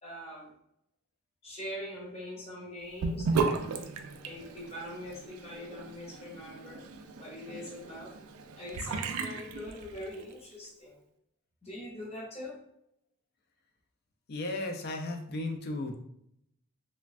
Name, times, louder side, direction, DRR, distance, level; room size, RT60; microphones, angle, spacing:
voice 1, 0.0-0.5 1.4-3.5 4.2-6.8 7.2-8.1 8.6-11.0 11.6-12.6, left 1 dB, 30° left, -4 dB, 0.8 m, -42 dB
Sink (filling or washing) / Bathtub (filling or washing), 3.0-10.3, right 4 dB, 80° right, 0.3 m, -35 dB
voice 2, 14.3-16.0, left 2 dB, 45° left, 3 dB, 0.4 m, -35 dB
3.2 x 2.2 x 2.4 m, 0.73 s
head